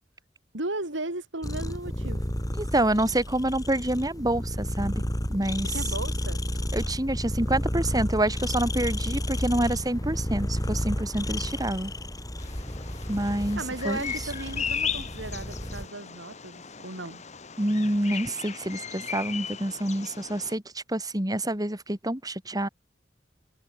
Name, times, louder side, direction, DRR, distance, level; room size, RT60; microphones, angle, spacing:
voice 1, 0.5-2.3 5.7-6.4 13.6-17.2, right 2 dB, 80° right, 4.7 m, -35 dB
sound 1, 1.4-15.9, equal, 20° left, 5.0 m, -31 dB
voice 2, 2.6-4.9 5.3-5.7 6.7-11.9 13.1-14.1 17.6-22.7, right 1 dB, 20° right, 3.3 m, -27 dB
Bird vocalization bird call bird song, 12.4-20.6, left 7 dB, 40° left, 1.8 m, -37 dB
open air
head